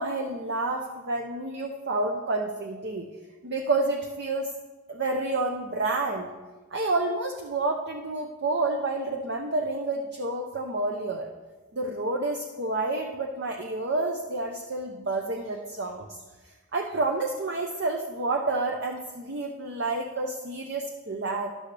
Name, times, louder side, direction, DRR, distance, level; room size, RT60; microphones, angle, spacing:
voice 1, 0.0-3.1 3.4-4.5 4.9-6.3 6.7-11.3 11.7-16.2 16.7-21.5, right 2 dB, 50° right, 2 dB, 0.8 m, -29 dB
12.5 x 11.5 x 3.3 m, 1.2 s
head